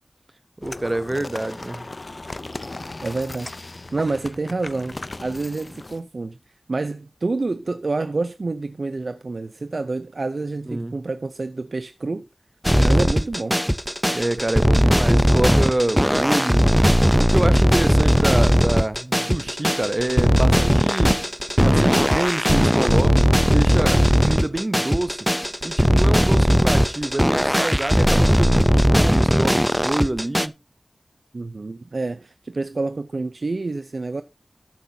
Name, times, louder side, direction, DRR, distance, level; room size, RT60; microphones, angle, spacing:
sound 1, 0.6-6.0, left 2 dB, 50° left, 0.6 m, -37 dB
voice 1, 0.6-1.9 10.7-11.0 14.1-16.7 17.2-21.3 21.6-25.3 25.6-30.5, right 1 dB, 35° right, 0.8 m, -26 dB
voice 2, 3.0-5.0 5.2-6.4 6.7-12.2 12.8-13.6 31.3-34.2, right 3 dB, 75° right, 0.6 m, -28 dB
sound 2, 12.6-30.5, equal, ahead, 0.6 m, -18 dB
12.5 x 9.4 x 2.8 m
wide cardioid pair, 65°, 0 cm